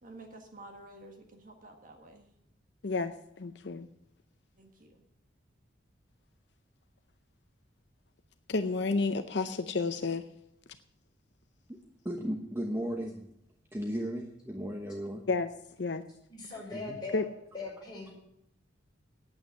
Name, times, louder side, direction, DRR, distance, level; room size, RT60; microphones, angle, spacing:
voice 1, 0.0-2.3 4.6-5.0, right 2 dB, 45° right, 3 dB, 1.7 m, -51 dB
voice 2, 2.8-3.9 8.5-10.2 15.3-15.5 15.8-16.0 17.1-17.2, left 3 dB, 60° left, 9 dB, 0.6 m, -31 dB
voice 3, 12.0-13.3 13.7-15.3 16.7-17.0, equal, 10° right, 1 dB, 0.9 m, -35 dB
voice 4, 16.3-17.3 17.5-18.1, left 3 dB, 20° left, -4 dB, 5.6 m, -40 dB
9.1 x 8.7 x 9.6 m, 0.78 s
head